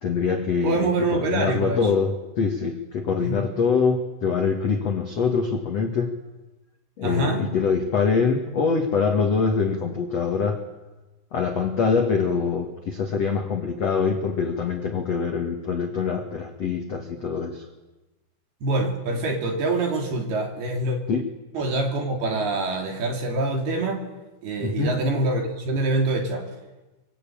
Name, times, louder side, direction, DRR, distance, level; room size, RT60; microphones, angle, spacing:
voice 1, 0.0-6.1 7.0-10.6 11.3-17.7 21.1-21.2 24.6-25.0, left 5 dB, 65° left, 4 dB, 1.6 m, -24 dB
voice 2, 0.6-1.9 3.2-3.5 7.0-7.4 18.6-21.0 21.5-24.0 24.4-26.5, right 2 dB, 55° right, 3 dB, 4.6 m, -25 dB
25.0 x 25.0 x 8.8 m, 1.1 s
omnidirectional pair, 6.0 m